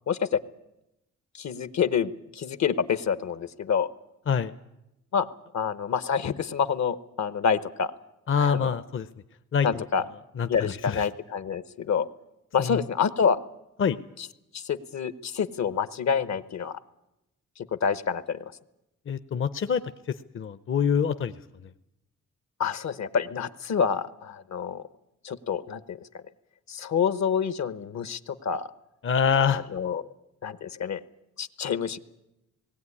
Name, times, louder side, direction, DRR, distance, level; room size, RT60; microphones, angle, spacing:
voice 1, 0.1-0.4 1.3-3.9 5.1-5.3 5.5-7.9 8.4-8.7 9.6-10.1 10.5-12.1 12.5-13.4 14.2-14.3 14.5-16.8 17.7-18.4 22.6-24.8 25.2-26.0 26.7-28.7 29.4-30.0 30.4-31.0 31.4-32.0, left 6 dB, 65° left, 15 dB, 1.0 m, -27 dB
voice 2, 8.3-9.1 9.5-9.8 10.4-11.0 12.6-12.8 13.8-14.0 19.1-19.8 20.3-21.3 29.0-29.6, left 6 dB, 45° left, 11 dB, 0.7 m, -25 dB
19.0 x 17.0 x 9.8 m, 0.90 s
cardioid pair, 95°, 30 cm